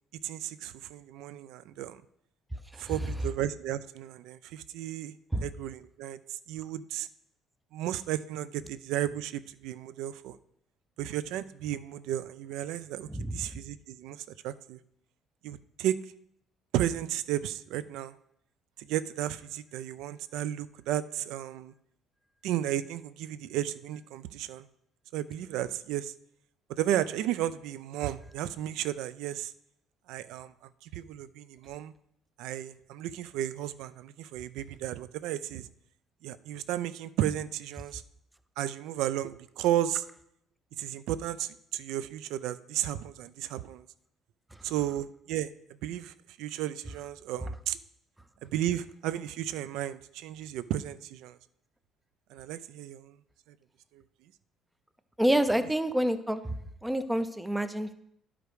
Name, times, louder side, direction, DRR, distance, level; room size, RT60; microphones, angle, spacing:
voice 1, 0.2-2.0 2.8-5.2 5.4-7.1 7.7-10.4 11.0-14.8 15.4-16.0 16.7-18.1 18.8-21.7 22.4-24.7 25.1-26.1 26.7-29.5 30.1-30.5 30.8-31.9 32.4-35.7 36.2-38.0 38.6-40.0 40.8-43.8 44.6-45.5 45.8-47.8 48.4-51.4 52.3-53.1 53.9-54.0, right 12 dB, 75° right, 15 dB, 0.4 m, -33 dB
voice 2, 55.2-56.5 56.8-57.9, right 1 dB, 5° right, 10 dB, 0.4 m, -28 dB
11.0 x 5.0 x 4.7 m, 0.73 s
cardioid pair, 180°, 0 cm